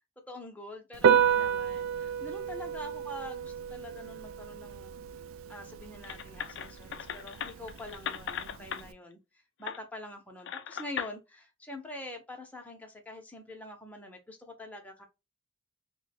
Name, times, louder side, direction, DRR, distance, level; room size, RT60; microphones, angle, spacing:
voice 1, 0.3-4.9 5.5-9.2 9.6-15.1, left 1 dB, 5° left, 0.7 m, -45 dB
Piano, 0.9-8.9, right 8 dB, 90° right, 0.3 m, -31 dB
sound 1, 6.0-8.8 9.6-9.8 10.5-11.1, left 8 dB, 60° left, 0.3 m, -38 dB
3.0 x 2.2 x 4.1 m
head